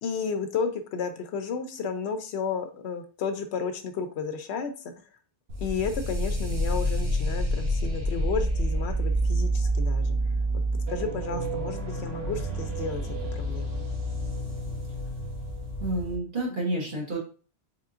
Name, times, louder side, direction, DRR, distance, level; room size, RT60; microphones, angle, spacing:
voice 1, 0.0-4.9 5.6-10.2 10.9-13.8, left 5 dB, 85° left, 8 dB, 0.9 m, -32 dB
sound 1, 5.5-16.2, right 1 dB, 70° right, 1.2 m, -28 dB
voice 2, 15.8-17.2, right 1 dB, 50° right, -3 dB, 1.4 m, -29 dB
3.7 x 3.7 x 2.4 m, 0.37 s
omnidirectional pair, 1.1 m